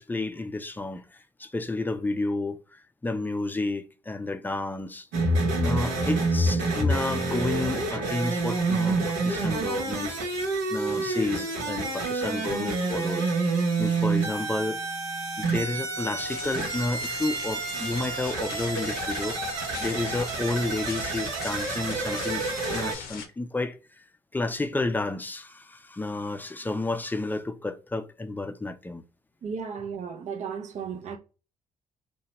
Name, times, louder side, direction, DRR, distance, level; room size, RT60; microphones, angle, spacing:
voice 1, 0.0-5.1 5.6-10.1 10.7-13.3 13.8-14.8 15.4-19.4 19.8-22.4 22.7-23.8 24.3-29.0, left 2 dB, 10° left, 0.4 m, -31 dB
sound 1, 5.1-22.9, right 3 dB, 80° right, 0.9 m, -28 dB
sound 2, 16.2-23.3, left 7 dB, 70° left, 0.6 m, -40 dB
voice 2, 29.4-31.2, right 6 dB, 50° right, 0.6 m, -34 dB
2.8 x 2.2 x 2.8 m
hypercardioid pair, 50°, 15 cm